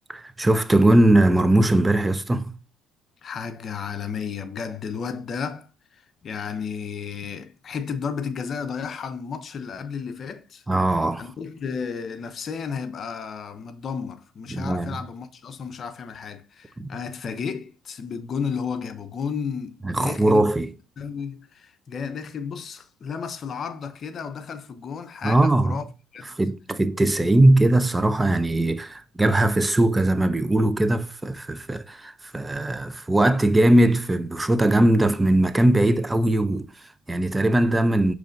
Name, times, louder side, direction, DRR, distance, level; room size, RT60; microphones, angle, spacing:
voice 1, 0.1-2.6 10.7-11.3 14.5-15.0 16.8-16.9 19.8-20.7 25.2-25.8 26.2-38.1, right 1 dB, 15° right, 0.4 m, -20 dB
voice 2, 3.2-10.6 11.2-20.4 21.0-25.8 26.1-26.4, left 6 dB, 50° left, 0.6 m, -33 dB
6.5 x 3.1 x 2.5 m
supercardioid pair, 75°, 0 cm